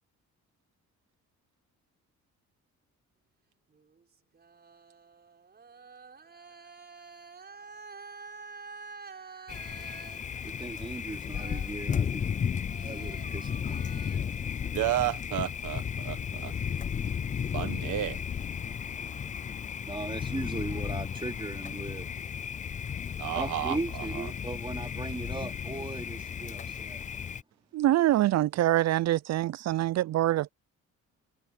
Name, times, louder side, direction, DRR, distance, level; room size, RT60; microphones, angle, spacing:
sound 1, 3.7-12.4 12.7-15.3, right 4 dB, 30° right, 5.8 m, -49 dB
Thunder, 9.5-27.4, left 7 dB, 25° left, 0.3 m, -34 dB
voice 1, 10.4-12.2 12.8-13.9 19.8-22.1 23.3-27.0, right 2 dB, 15° right, 2.9 m, -38 dB
voice 2, 14.7-16.5 17.5-18.2 23.2-24.3, right 13 dB, 75° right, 1.5 m, -32 dB
voice 3, 27.7-30.5, right 14 dB, 60° right, 0.5 m, -25 dB
cardioid pair, 100°, 31 cm